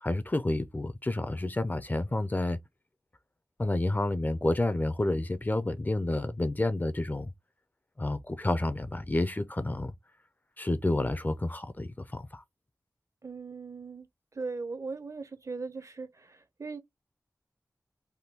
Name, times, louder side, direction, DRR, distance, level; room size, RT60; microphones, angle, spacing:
voice 1, 0.0-2.6 3.6-7.3 8.0-9.9 10.6-12.4, left 2 dB, 25° left, 0.5 m, -29 dB
voice 2, 13.2-14.1 14.3-16.8, right 4 dB, 50° right, 0.6 m, -39 dB
3.5 x 2.2 x 2.8 m
cardioid pair, 45°, 7 cm